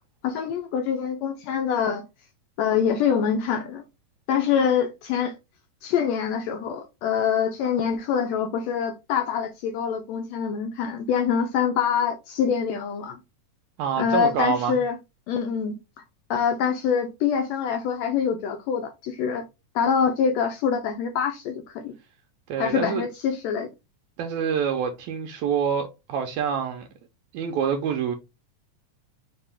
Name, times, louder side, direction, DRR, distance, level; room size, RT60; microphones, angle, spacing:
voice 1, 0.2-2.0 2.6-3.8 4.3-5.4 5.8-13.2 14.0-15.0 15.3-15.8 16.3-19.4 19.7-21.9 22.6-23.7, left 7 dB, 80° left, 1.6 m, -25 dB
voice 2, 13.8-14.8 22.5-23.0 24.2-26.9 27.3-28.2, right 7 dB, 80° right, 1.9 m, -26 dB
5.2 x 2.9 x 3.4 m
omnidirectional pair, 3.5 m